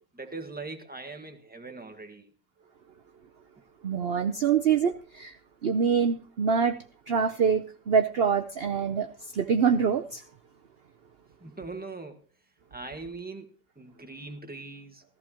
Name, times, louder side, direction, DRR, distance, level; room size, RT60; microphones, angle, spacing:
voice 1, 0.1-2.3 11.4-12.3 12.7-15.0, right 3 dB, 5° right, 5 dB, 1.3 m, -41 dB
voice 2, 3.8-5.3 5.6-6.8 7.1-9.1 9.3-10.2, right 6 dB, 55° right, 6 dB, 0.6 m, -25 dB
16.0 x 14.5 x 3.0 m, 0.33 s
omnidirectional pair, 1.8 m